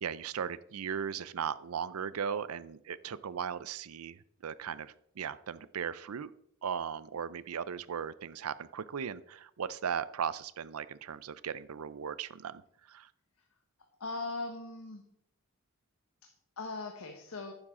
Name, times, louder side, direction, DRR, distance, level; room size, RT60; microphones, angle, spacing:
voice 1, 0.0-6.3 6.6-12.6 12.9-13.1, right 7 dB, 85° right, 17 dB, 0.5 m, -37 dB
voice 2, 14.0-15.0 16.2-17.5, left 3 dB, 90° left, 3 dB, 1.3 m, -40 dB
11.5 x 9.6 x 3.7 m, 0.73 s
head